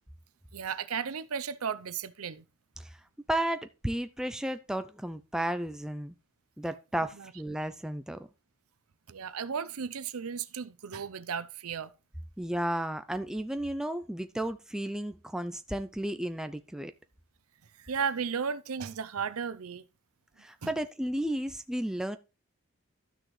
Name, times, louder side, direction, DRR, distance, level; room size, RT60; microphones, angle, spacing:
voice 1, 0.5-2.4 7.1-7.3 9.1-11.9 17.8-19.8 20.6-20.7, right 6 dB, 75° right, 0.6 m, -34 dB
voice 2, 3.3-6.1 6.6-8.2 12.4-16.9 20.4-22.2, right 1 dB, 5° right, 0.3 m, -33 dB
12.5 x 6.3 x 3.2 m
head